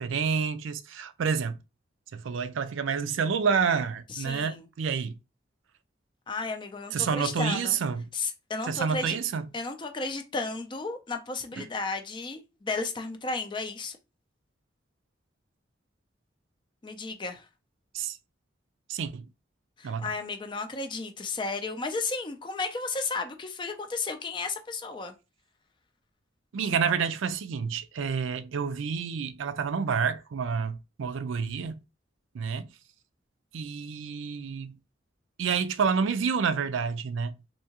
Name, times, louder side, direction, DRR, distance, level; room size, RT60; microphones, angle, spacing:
voice 1, 0.0-1.6 2.1-5.1 6.9-8.0 8.7-9.4 11.6-11.7 17.9-18.2 18.9-19.2 19.8-20.1 26.5-31.8 32.3-32.7 33.5-34.8 35.4-37.4, right 6 dB, 85° right, 0.4 m, -29 dB
voice 2, 4.1-4.7 6.3-7.8 8.1-9.2 9.5-14.0 16.8-17.5 19.8-25.1, left 3 dB, 25° left, 0.4 m, -33 dB
3.4 x 2.8 x 2.8 m
head